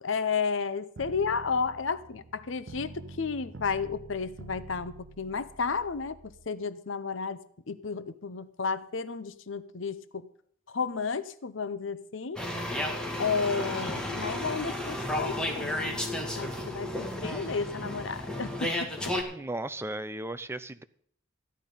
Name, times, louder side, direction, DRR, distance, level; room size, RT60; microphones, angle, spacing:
voice 1, 0.0-10.3 10.7-12.4 13.2-16.0 16.3-19.1, left 5 dB, 70° left, 13 dB, 0.8 m, -32 dB
sound 1, 1.0-6.5, right 2 dB, 75° right, 0.9 m, -47 dB
sound 2, 12.4-19.2, left 1 dB, 5° left, 2.0 m, -33 dB
voice 2, 19.3-20.8, right 1 dB, 15° right, 12 dB, 0.6 m, -36 dB
14.5 x 10.5 x 5.4 m, 0.63 s
head